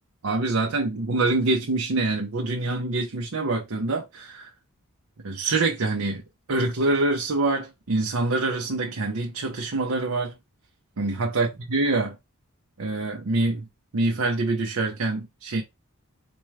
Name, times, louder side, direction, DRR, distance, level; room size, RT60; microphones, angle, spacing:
voice 1, 0.2-4.5 5.2-6.2 6.5-10.3 11.0-12.2 12.8-13.6 13.9-15.6, right 2 dB, 75° right, 0.7 m, -25 dB
4.3 x 2.2 x 4.7 m
head